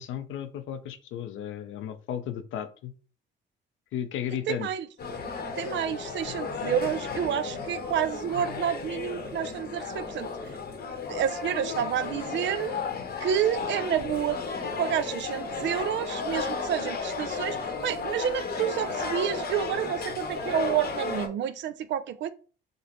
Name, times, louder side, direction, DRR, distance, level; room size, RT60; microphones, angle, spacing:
voice 1, 0.0-2.9 3.9-4.7, left 9 dB, 80° left, 0.5 m, -34 dB
voice 2, 4.5-4.9 5.6-10.5 11.1-12.8 13.2-14.4 14.8-22.3, right 9 dB, 70° right, 0.4 m, -29 dB
sound 1, 5.0-21.3, left 4 dB, 50° left, 0.8 m, -34 dB
5.0 x 2.0 x 2.9 m
cardioid pair, 90°, 20 cm